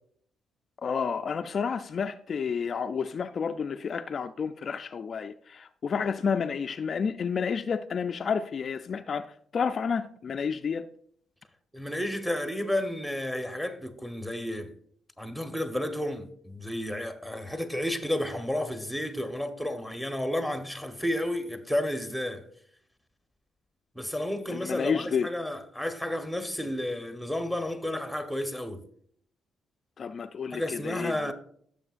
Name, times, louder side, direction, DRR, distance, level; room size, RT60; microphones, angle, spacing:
voice 1, 0.8-10.9 24.5-25.3 30.0-31.3, left 6 dB, 50° left, 0.3 m, -30 dB
voice 2, 11.7-14.7 15.2-22.4 23.9-28.8 30.5-31.3, left 1 dB, ahead, 1.0 m, -32 dB
15.0 x 6.8 x 2.5 m
cardioid pair, 90°, 0 cm